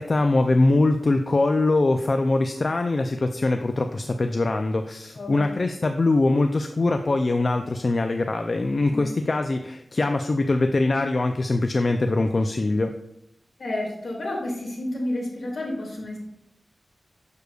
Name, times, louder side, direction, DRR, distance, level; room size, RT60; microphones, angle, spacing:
voice 1, 0.0-12.9, left 2 dB, 45° left, 6 dB, 0.3 m, -22 dB
voice 2, 5.1-5.6 8.9-9.1 13.6-16.2, left 1 dB, 65° left, -2 dB, 2.0 m, -30 dB
6.7 x 6.4 x 2.3 m, 0.79 s
wide cardioid pair, 110°, 0 cm